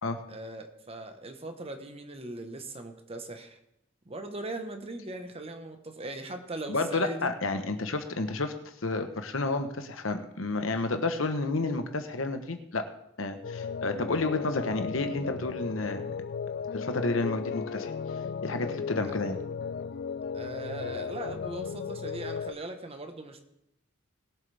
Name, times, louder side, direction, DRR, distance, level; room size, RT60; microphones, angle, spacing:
voice 1, 0.3-3.6 4.1-7.3 19.0-19.3 20.3-23.4, right 2 dB, 30° right, 6 dB, 1.2 m, -40 dB
voice 2, 6.7-8.5 8.8-12.9 13.2-16.1 16.7-17.9 18.4-19.4, left 3 dB, 85° left, 7 dB, 1.2 m, -30 dB
sound 1, 13.4-22.5, left 6 dB, 55° left, 0.4 m, -35 dB
21.0 x 7.9 x 3.5 m, 0.81 s
head